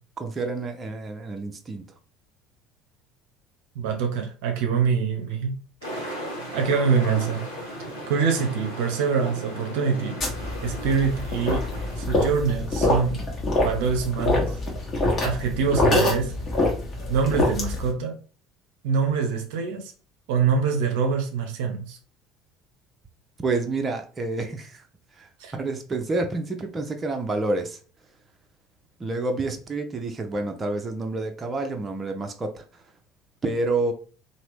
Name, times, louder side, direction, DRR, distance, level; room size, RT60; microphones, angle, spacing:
voice 1, 0.2-1.8 23.4-24.9 25.2-27.8 29.0-32.8 33.4-33.9, right 2 dB, 25° right, 0.6 m, -28 dB
voice 2, 3.8-5.5 6.0-6.2 6.5-7.5 8.1-10.2 10.6-11.7 12.0-13.2 13.6-14.6 15.2-16.4 17.1-18.2 18.8-19.9 20.3-22.0 25.4-25.5, right 6 dB, 65° right, 0.6 m, -25 dB
sound 1, 5.8-12.1, equal, 80° left, 1.1 m, -36 dB
sound 2, 10.2-17.9, left 2 dB, 35° left, 1.2 m, -25 dB
2.9 x 2.6 x 3.2 m
figure-of-eight pair, 60°, 0 cm